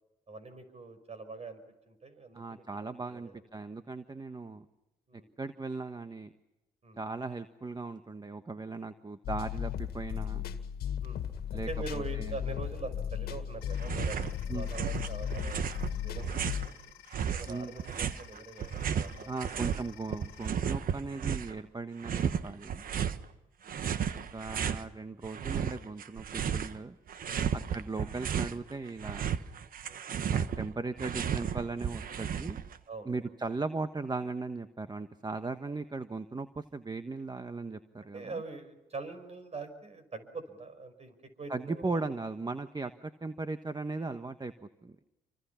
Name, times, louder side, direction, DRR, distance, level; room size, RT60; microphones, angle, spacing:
voice 1, 0.3-3.4 5.1-5.3 6.8-7.0 11.0-11.2 11.5-16.7 17.1-19.4 22.9-23.2 27.3-27.4 29.8-30.0 32.9-33.3 38.1-42.0, right 3 dB, 40° right, 10 dB, 5.8 m, -44 dB
voice 2, 2.3-4.6 5.4-6.3 7.0-10.4 11.5-12.4 14.5-14.7 17.5-17.7 19.3-22.8 24.1-26.9 27.5-29.3 30.3-32.6 33.0-38.4 41.5-44.5 44.8-45.0, right 3 dB, 25° right, 9 dB, 1.3 m, -38 dB
sound 1, 9.2-16.7, left 9 dB, 75° left, 1.9 m, -36 dB
sound 2, 13.6-20.5, left 16 dB, 90° left, 1.5 m, -55 dB
sound 3, 13.8-14.3 14.6-16.7 17.1-19.8 20.1-21.6 22.0-23.2 23.7-24.8 25.2-26.8 27.1-28.6 28.9-32.8, right 8 dB, 60° right, 1.3 m, -33 dB
29.0 x 25.0 x 5.8 m, 0.97 s
supercardioid pair, 55°, 16 cm